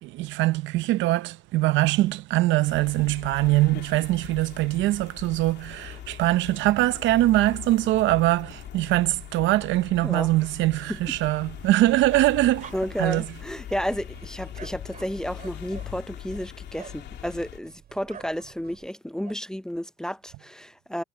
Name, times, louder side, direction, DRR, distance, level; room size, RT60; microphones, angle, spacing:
voice 1, 0.0-12.7 13.0-13.3, right 17 dB, 80° right, 0.7 m, -23 dB
sound 1, 2.7-17.6, left 11 dB, 65° left, 3.0 m, -41 dB
sound 2, 10.9-18.9, right 10 dB, 60° right, 6.2 m, -56 dB
sound 3, 12.1-13.3 13.7-17.1 18.0-18.4 18.8-19.3, right 7 dB, 40° right, 3.0 m, -47 dB
voice 2, 12.7-21.0, equal, 5° left, 0.6 m, -32 dB
cardioid pair, 120°, 19 cm